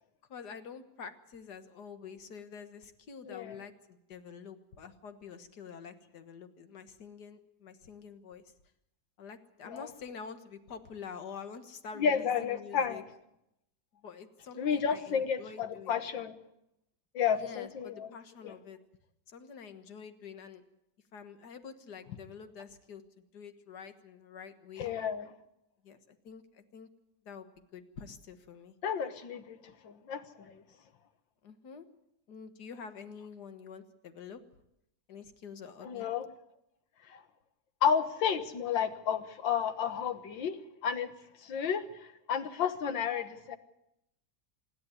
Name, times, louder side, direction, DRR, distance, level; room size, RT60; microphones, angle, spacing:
voice 1, 0.3-8.4 9.2-13.0 14.0-16.0 17.3-18.8 19.3-20.6 21.1-24.9 25.8-26.9 27.3-27.5 27.7-28.8 31.4-31.9 32.3-34.4 35.1-36.1, left 6 dB, 60° left, 9 dB, 2.0 m, -47 dB
voice 2, 3.2-3.6 9.6-9.9 12.0-13.0 14.6-16.3 17.1-18.1 18.4-18.5 24.8-25.3 28.8-29.6 29.8-30.6 35.8-36.3 37.1-37.2 37.8-40.6 40.8-41.1 41.4-43.6, left 7 dB, 80° left, 10 dB, 2.0 m, -31 dB
26.0 x 11.0 x 9.5 m, 0.83 s
omnidirectional pair, 2.0 m